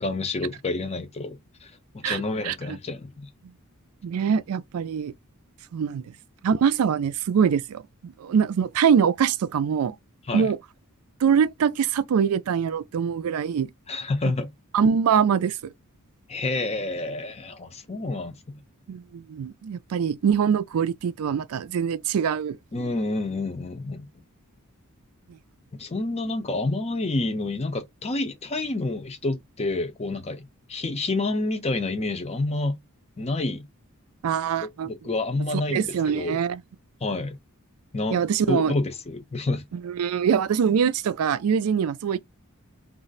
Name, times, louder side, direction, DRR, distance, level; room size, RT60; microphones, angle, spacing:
voice 1, 0.0-3.3 10.3-10.5 13.9-14.5 16.3-18.6 22.7-24.1 25.8-30.4 30.7-32.8 33.2-33.6 34.8-35.9 36.1-36.4 37.0-37.4 37.9-38.2 38.5-39.6, left 2 dB, 30° left, 0.6 m, -28 dB
voice 2, 2.0-2.6 4.0-5.1 5.7-6.0 6.4-10.0 10.3-10.6 11.2-13.7 14.7-15.7 18.9-22.6 25.3-25.4 34.2-34.9 35.7-36.6 38.1-38.7 39.7-42.2, right 7 dB, 70° right, 0.4 m, -23 dB
2.5 x 2.0 x 3.8 m
head